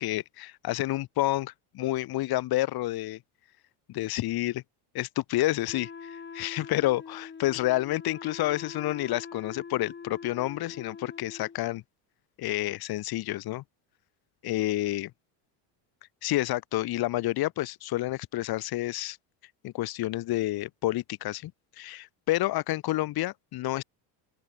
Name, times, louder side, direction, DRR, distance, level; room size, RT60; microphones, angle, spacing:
voice 1, 0.0-3.2 3.9-4.6 4.9-11.8 12.4-13.6 14.4-15.1 16.2-19.2 19.6-21.5 21.8-23.8, left 16 dB, 50° left, 1.7 m, -29 dB
Wind instrument woodwind instrument, 5.7-11.6, left 5 dB, 25° left, 7.8 m, -44 dB
open air
cardioid pair, 125°, 46 cm